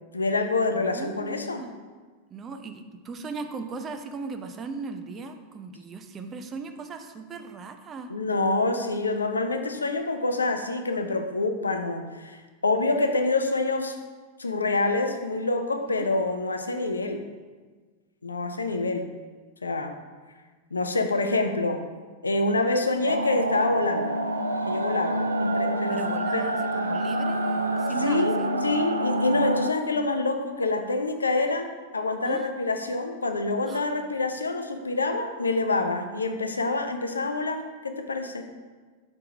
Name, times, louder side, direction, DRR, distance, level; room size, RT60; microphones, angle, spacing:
voice 1, 0.1-1.6 8.1-13.9 14.4-17.2 18.2-19.1 19.6-20.0 20.7-21.8 22.2-24.1 24.7-26.1 26.3-26.4 28.0-28.4 28.6-38.4, left 3 dB, 75° left, 7 dB, 0.5 m, -26 dB
voice 2, 0.7-1.7 2.3-8.1 16.0-16.1 25.9-28.7 32.2-32.5 33.7-33.8, right 4 dB, 25° right, 6 dB, 0.5 m, -38 dB
sound 1, 23.1-29.7, right 1 dB, 75° right, 0.4 m, -27 dB
5.4 x 4.6 x 5.1 m, 1.4 s
figure-of-eight pair, 90°, 0 cm